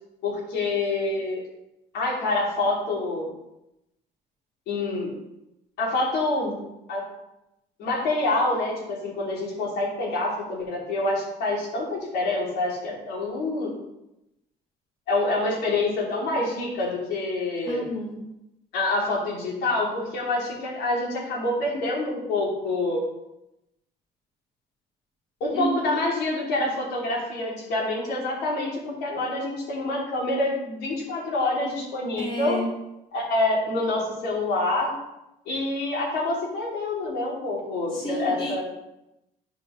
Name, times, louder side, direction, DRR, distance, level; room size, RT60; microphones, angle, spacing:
voice 1, 0.2-1.4 1.9-3.3 4.7-5.1 5.8-6.6 6.9-7.0 7.8-13.7 15.1-17.9 18.7-23.0 25.4-32.6 33.1-34.9 35.5-38.6, left 2 dB, 85° left, -4 dB, 3.0 m, -26 dB
voice 2, 17.7-18.2 25.5-25.8 32.1-32.7 37.9-38.6, equal, 30° left, -9 dB, 2.5 m, -30 dB
10.5 x 5.1 x 3.8 m, 0.90 s
cardioid pair, 110°, 17 cm